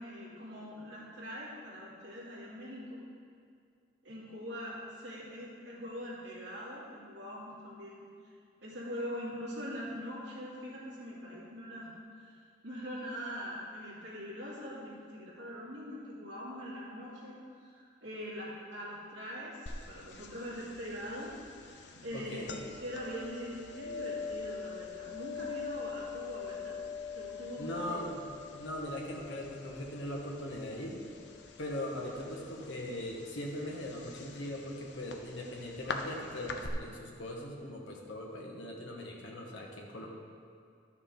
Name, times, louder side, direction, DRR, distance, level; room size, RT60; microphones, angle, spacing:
voice 1, 0.0-3.0 4.0-8.1 8.6-11.9 12.2-12.4 12.6-17.4 17.6-21.3 22.0-26.8 27.1-28.1, equal, 70° right, -7 dB, 2.6 m, -42 dB
sound 1, 19.7-36.7, left 5 dB, 60° left, 0.7 m, -44 dB
voice 2, 22.1-22.6 27.6-28.3 28.5-31.0 31.6-40.1, left 1 dB, 80° left, -2 dB, 1.5 m, -40 dB
12.0 x 6.5 x 3.8 m, 2.2 s
head